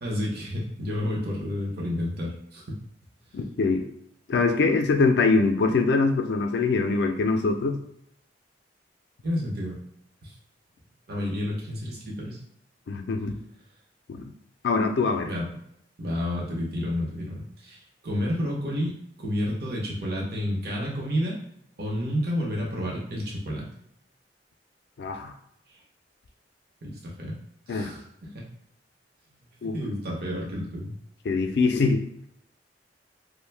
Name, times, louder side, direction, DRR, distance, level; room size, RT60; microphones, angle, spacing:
voice 1, 0.0-2.8 9.2-9.8 10.2-10.3 11.1-12.4 15.2-15.5 16.0-18.9 19.2-21.4 21.8-23.7 26.8-27.3 27.7-28.5 29.6-30.9, equal, 60° right, -3 dB, 0.8 m, -30 dB
voice 2, 3.3-3.9 4.3-7.8 12.9-13.3 14.1-14.3 14.6-15.3 25.0-25.3 27.7-27.9 29.6-29.8 31.3-32.0, left 3 dB, 70° left, 6 dB, 0.4 m, -23 dB
2.6 x 2.1 x 3.3 m, 0.75 s
head